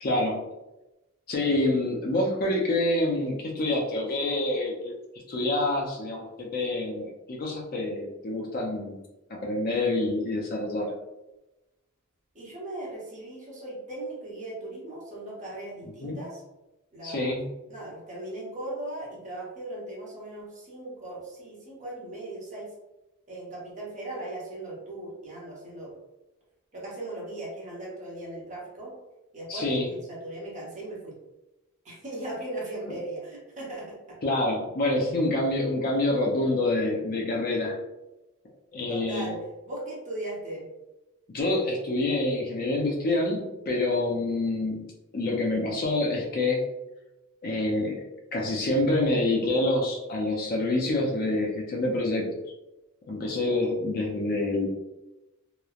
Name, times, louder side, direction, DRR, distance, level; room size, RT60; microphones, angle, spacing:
voice 1, 0.0-0.4 1.3-4.9 5.3-9.0 9.3-10.9 16.0-16.2 17.0-17.5 29.5-29.9 34.2-37.8 38.7-39.3 41.3-44.8 45.1-46.6 47.4-48.0 48.3-52.3 53.1-54.7, left 2 dB, 40° left, -1 dB, 0.4 m, -27 dB
voice 2, 12.3-16.4 16.9-17.4 17.7-22.7 23.3-25.9 26.7-28.9 29.3-31.1 31.8-34.2 38.9-39.4 39.6-40.6, right 1 dB, 35° right, -5 dB, 0.8 m, -38 dB
3.0 x 2.0 x 2.3 m, 1.0 s
head